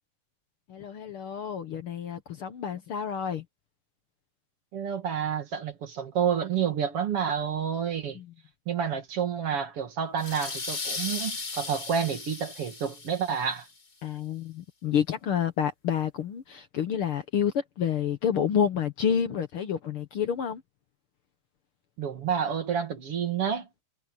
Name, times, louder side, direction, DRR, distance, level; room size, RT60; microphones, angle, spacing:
voice 1, 0.7-3.4 8.1-8.3 14.0-20.6, left 8 dB, 60° left, 1.5 m, -29 dB
voice 2, 4.7-8.2 8.7-13.7 22.0-23.7, right 7 dB, 50° right, 2.8 m, -29 dB
sound 1, 10.2-13.6, left 3 dB, 35° left, 4.2 m, -36 dB
omnidirectional pair, 3.6 m